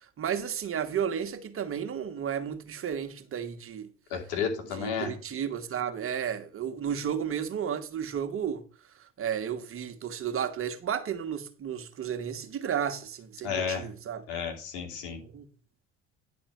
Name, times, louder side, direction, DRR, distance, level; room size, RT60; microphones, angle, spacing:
voice 1, 0.2-3.9 4.7-8.6 9.2-14.2 15.2-15.4, right 8 dB, 40° right, 1.4 m, -33 dB
voice 2, 4.1-5.1 13.4-13.9 14.3-15.2, left 6 dB, 80° left, 2.7 m, -32 dB
10.5 x 4.3 x 5.9 m
supercardioid pair, 75°, 32 cm